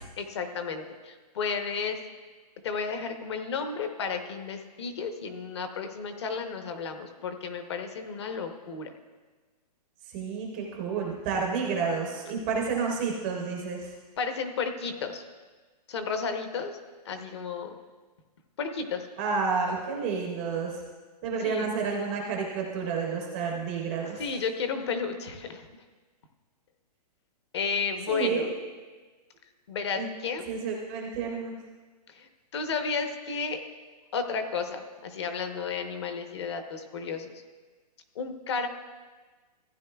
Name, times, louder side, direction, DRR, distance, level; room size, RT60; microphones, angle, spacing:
voice 1, 0.2-2.0 2.6-8.9 14.2-15.2 15.9-16.8 17.0-17.7 18.6-19.1 21.4-21.7 24.2-25.7 27.5-28.5 29.7-30.5 32.1-33.6 34.1-37.3 38.1-38.7, left 5 dB, 40° left, 7 dB, 0.8 m, -32 dB
voice 2, 10.1-13.9 19.2-20.8 21.2-24.3 28.1-28.5 30.0-30.1 30.5-31.6, right 5 dB, 15° right, 0 dB, 0.5 m, -30 dB
15.0 x 9.5 x 2.3 m, 1.3 s
hypercardioid pair, 175°, 21 cm